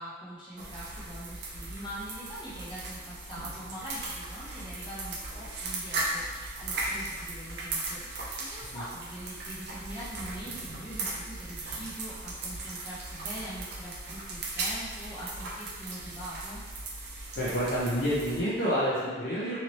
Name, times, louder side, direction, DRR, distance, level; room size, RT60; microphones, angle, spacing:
voice 1, 0.0-16.6, equal, 25° left, -11 dB, 1.2 m, -43 dB
sound 1, 0.6-18.4, right 2 dB, 60° right, 0.5 m, -37 dB
voice 2, 17.4-19.6, equal, 55° left, -10 dB, 0.6 m, -28 dB
2.8 x 2.8 x 3.0 m, 1.4 s
head